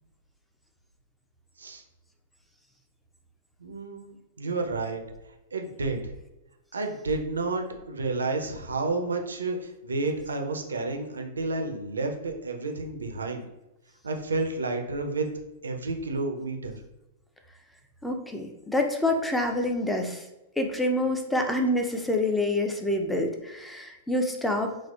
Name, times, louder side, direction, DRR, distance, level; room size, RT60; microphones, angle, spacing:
voice 1, 3.6-5.0 5.5-6.0 6.7-13.4 14.0-15.3 15.6-16.8, right 3 dB, 75° right, 3 dB, 0.5 m, -30 dB
voice 2, 18.0-20.2 20.6-24.7, left 1 dB, 5° left, 4 dB, 0.4 m, -27 dB
4.3 x 2.0 x 2.3 m, 0.97 s
figure-of-eight pair, 100°, 0 cm